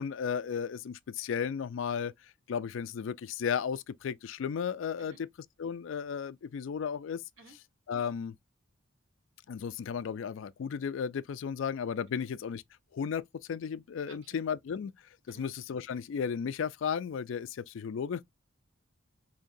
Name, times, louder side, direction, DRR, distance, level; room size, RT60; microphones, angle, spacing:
voice 1, 0.0-2.1 2.5-5.1 5.6-7.2 7.9-8.3 9.5-12.6 12.9-14.9 15.3-18.2, left 7 dB, 70° left, 0.3 m, -34 dB
voice 2, 14.1-14.4 15.3-15.5, right 2 dB, 75° right, 1.4 m, -54 dB
5.1 x 2.8 x 2.6 m
head